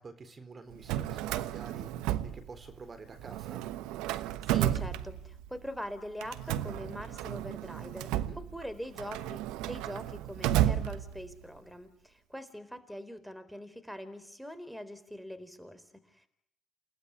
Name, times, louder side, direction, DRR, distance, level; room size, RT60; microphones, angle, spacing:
voice 1, 0.0-3.6 8.1-8.4, right 4 dB, 40° right, 10 dB, 4.0 m, -49 dB
Drawer open or close, 0.7-2.9 3.2-5.6 6.2-11.5, right 12 dB, 80° right, 1.1 m, -33 dB
voice 2, 4.5-16.3, equal, ahead, 12 dB, 4.1 m, -43 dB
29.5 x 18.0 x 9.9 m, 0.71 s
hypercardioid pair, 55°, 0 cm